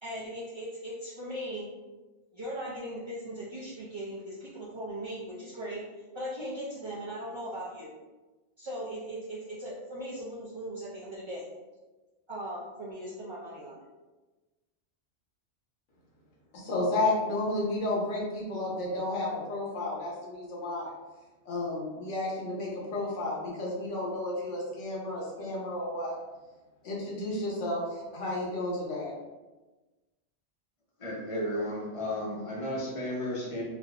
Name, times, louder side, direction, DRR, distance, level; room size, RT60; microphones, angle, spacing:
voice 1, 0.0-1.7 2.3-5.8 6.1-7.9 8.6-11.5 12.3-13.8, right 1 dB, 45° right, -8 dB, 0.4 m, -38 dB
voice 2, 16.5-20.9 21.4-26.2 26.8-29.1, left 2 dB, 85° left, -4 dB, 1.2 m, -32 dB
voice 3, 31.0-33.6, left 1 dB, 35° left, -3 dB, 0.6 m, -33 dB
3.2 x 2.6 x 2.3 m, 1.2 s
omnidirectional pair, 1.2 m